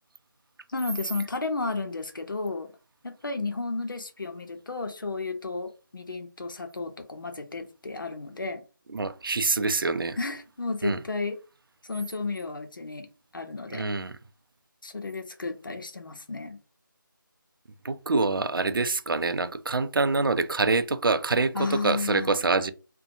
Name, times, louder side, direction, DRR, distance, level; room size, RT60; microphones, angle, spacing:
voice 1, 0.7-2.7 3.0-8.6 10.2-11.4 11.8-13.1 13.3-13.8 14.8-16.6 21.5-22.4, left 3 dB, 70° left, 0.7 m, -33 dB
voice 2, 8.9-10.2 10.8-11.0 13.7-14.1 17.8-22.7, right 3 dB, 80° right, 0.4 m, -25 dB
2.7 x 2.2 x 2.6 m
figure-of-eight pair, 175°, 11 cm